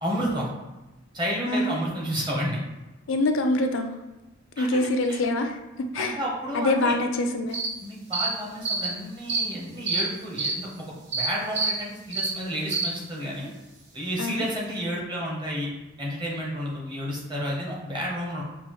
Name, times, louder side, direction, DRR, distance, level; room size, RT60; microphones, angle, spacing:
voice 1, 0.0-0.5 1.1-2.6 4.6-5.2 5.9-7.0 7.8-13.5 13.9-15.7 16.0-18.4, equal, 20° right, -4 dB, 0.9 m, -31 dB
voice 2, 1.5-1.8 3.1-3.9 4.6-6.2 6.5-7.6 14.2-14.4, left 2 dB, 65° left, 6 dB, 0.4 m, -25 dB
sound 1, 7.5-7.7 8.1-8.3 8.6-8.9 9.3-9.4 9.9-10.0 10.4-10.5 11.1-11.3 11.5-11.7 12.1-12.3 12.7-12.9, right 4 dB, 55° right, 1.2 m, -26 dB
5.4 x 2.4 x 3.1 m, 1.1 s
head